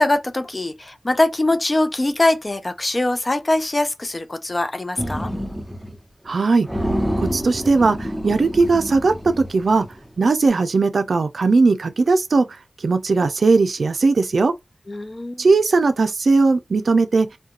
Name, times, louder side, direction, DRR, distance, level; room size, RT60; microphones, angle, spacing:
voice 1, 0.0-5.3 14.9-15.5, left 2 dB, 40° left, 0.5 m, -22 dB
Sleeping Monster, 5.0-6.0 6.3-6.4 6.7-10.1, equal, 5° right, 0.7 m, -27 dB
voice 2, 6.3-6.7 7.2-9.9 10.2-12.5 12.8-14.5 15.4-17.3, right 3 dB, 80° right, 0.4 m, -18 dB
2.4 x 2.2 x 2.8 m
cardioid pair, 50°, 0 cm